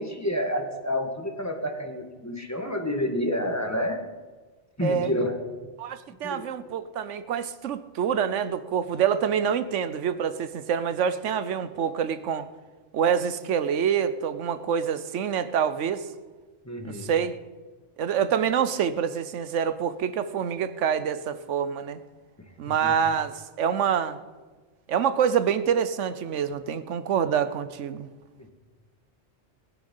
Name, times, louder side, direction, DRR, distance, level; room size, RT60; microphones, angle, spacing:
voice 1, 0.0-4.0 4.8-5.4 6.2-6.4 16.6-17.1 22.7-22.9 28.4-28.5, left 1 dB, 15° left, 3 dB, 1.7 m, -29 dB
voice 2, 4.8-5.1 5.8-12.5 12.9-16.1 16.8-17.4 18.0-22.0 22.6-24.2 24.9-28.1, right 8 dB, 85° right, 12 dB, 1.1 m, -26 dB
20.0 x 10.5 x 5.5 m, 1.3 s
omnidirectional pair, 1.2 m